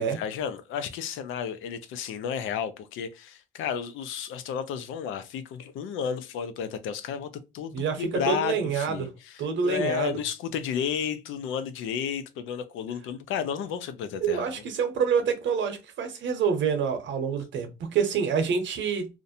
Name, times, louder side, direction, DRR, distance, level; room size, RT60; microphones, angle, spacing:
voice 1, 0.0-14.5, left 8 dB, 90° left, 0.4 m, -32 dB
voice 2, 7.7-9.1 9.4-10.1 14.2-19.1, right 6 dB, 70° right, 0.8 m, -27 dB
2.5 x 2.1 x 2.6 m
cardioid pair, 90°, 20 cm